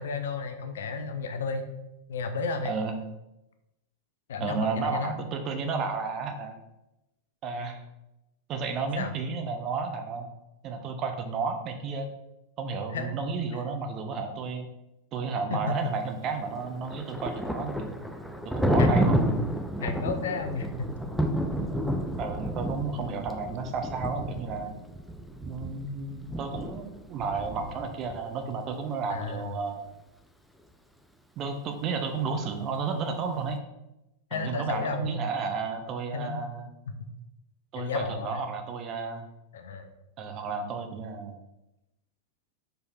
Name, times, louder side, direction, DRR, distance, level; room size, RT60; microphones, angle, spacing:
voice 1, 0.0-1.7 2.1-2.7 4.3-5.1 9.0-9.1 12.9-13.2 15.5-15.8 18.8-19.0 19.8-20.9 29.1-29.6 34.3-35.3 36.1-36.5 36.9-37.0 37.8-38.5 39.5-39.9, left 4 dB, 60° left, 7 dB, 0.7 m, -32 dB
voice 2, 2.6-2.9 4.4-6.6 7.4-7.8 8.5-10.3 10.6-12.1 12.6-14.7 15.1-18.0 18.4-19.2 22.2-24.7 25.4-29.8 31.4-33.6 34.3-36.7 37.7-39.3 40.2-41.4, right 4 dB, 35° right, 5 dB, 0.8 m, -32 dB
Thunder, 16.4-28.2, equal, ahead, 0.5 m, -30 dB
5.2 x 4.8 x 4.3 m, 0.93 s
figure-of-eight pair, 90°, 0 cm